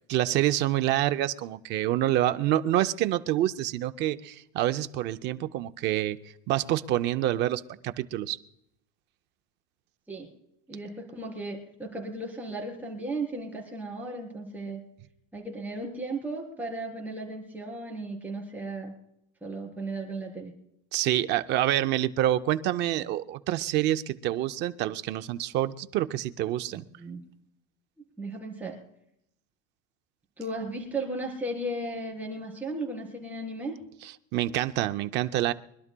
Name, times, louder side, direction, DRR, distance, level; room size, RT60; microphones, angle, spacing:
voice 1, 0.1-6.2 6.5-8.4 20.9-26.8 34.3-35.5, right 13 dB, 30° right, 10 dB, 0.4 m, -27 dB
voice 2, 10.7-14.8 15.3-18.9 19.4-20.5 26.7-27.2 28.2-28.8 30.4-33.8, right 2 dB, 5° right, -1 dB, 3.5 m, -35 dB
25.0 x 12.0 x 2.2 m, 0.77 s
cardioid pair, 165°, 38 cm